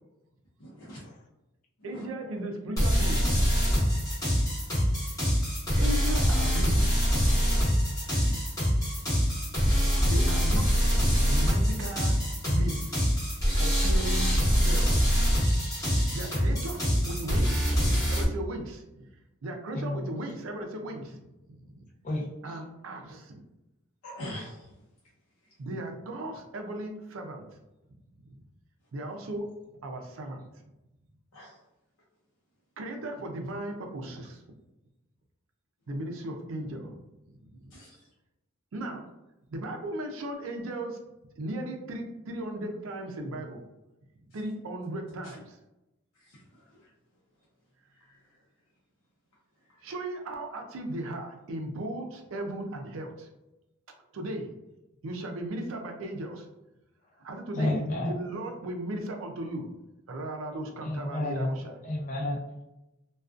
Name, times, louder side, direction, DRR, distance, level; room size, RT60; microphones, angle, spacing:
voice 1, 0.6-1.1 1.8-2.0 8.3-8.4 12.5-12.6 13.8-13.9 24.0-24.7 31.3-31.5 37.7-38.1 45.2-45.3 46.2-46.6 48.0-48.2, right 1 dB, 85° left, -7 dB, 0.6 m, -41 dB
voice 2, 1.8-3.3 5.8-6.9 10.0-10.7 11.2-12.2 12.5-12.9 13.6-14.3 14.6-15.1 15.8-19.1 19.4-21.3 21.7-21.8 22.4-23.4 25.6-27.4 28.2-28.3 28.9-29.5 29.8-30.5 32.8-34.4 35.9-37.0 37.4-37.7 38.7-39.0 39.5-41.0 41.4-43.6 44.3-45.6 49.8-53.3 54.1-54.5 55.0-56.5 57.2-59.7 60.1-61.7, right 1 dB, 65° right, 3 dB, 0.4 m, -36 dB
sound 1, 2.8-18.2, equal, 15° left, 0.9 m, -24 dB
voice 3, 19.7-20.1 22.0-22.7 57.5-58.2 60.8-61.5 61.8-62.6, left 1 dB, 35° left, -1 dB, 0.4 m, -31 dB
2.4 x 2.2 x 2.4 m, 0.96 s
head